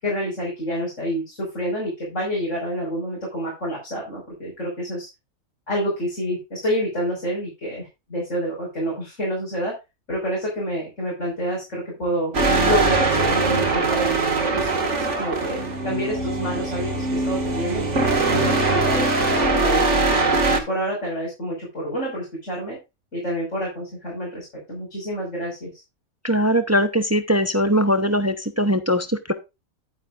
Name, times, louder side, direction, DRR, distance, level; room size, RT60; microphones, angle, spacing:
voice 1, 0.0-5.1 5.7-9.7 10.1-12.3 12.6-14.2 14.5-14.7 15.0-15.6 15.8-17.8 18.3-22.8 23.1-25.8, equal, 60° left, -4 dB, 5.9 m, -28 dB
sound 1, 12.3-20.6, right 3 dB, 55° right, 2.3 m, -21 dB
voice 2, 26.2-29.3, equal, 15° right, 8 dB, 0.7 m, -21 dB
11.5 x 9.2 x 2.5 m, 0.25 s
omnidirectional pair, 1.5 m